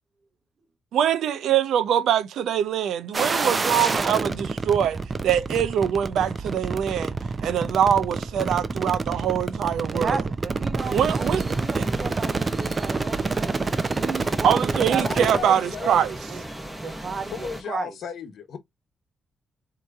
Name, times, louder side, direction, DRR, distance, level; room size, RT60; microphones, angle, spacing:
voice 1, 0.9-5.0 5.2-7.1 7.4-10.2 10.9-11.4 11.8-11.9 14.4-16.1, right 9 dB, 85° right, 0.6 m, -23 dB
sound 1, 3.1-15.4, right 4 dB, 30° right, 0.6 m, -27 dB
voice 2, 9.9-13.5 13.9-16.0 16.3-16.4 16.8-17.9, right 5 dB, 50° right, 1.0 m, -34 dB
sound 2, 10.8-17.6, right 1 dB, 10° right, 1.7 m, -37 dB
voice 3, 15.0-16.0 17.3-18.6, left 7 dB, 70° left, 1.0 m, -34 dB
4.6 x 2.9 x 2.4 m
cardioid pair, 95°, 0 cm